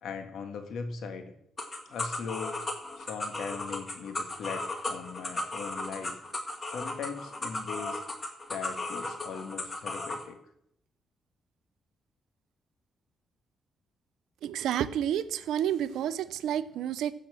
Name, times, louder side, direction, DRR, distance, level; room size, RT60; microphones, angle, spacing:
voice 1, 0.0-1.3 1.8-2.6 3.0-6.2 6.6-8.0 8.5-10.4, left 5 dB, 75° left, 7 dB, 1.7 m, -39 dB
sound 1, 1.6-10.2, left 2 dB, 35° left, 2.1 m, -35 dB
voice 2, 14.4-17.1, right 10 dB, 80° right, 15 dB, 0.6 m, -30 dB
15.5 x 5.9 x 6.2 m, 0.74 s
cardioid pair, 75°, 0 cm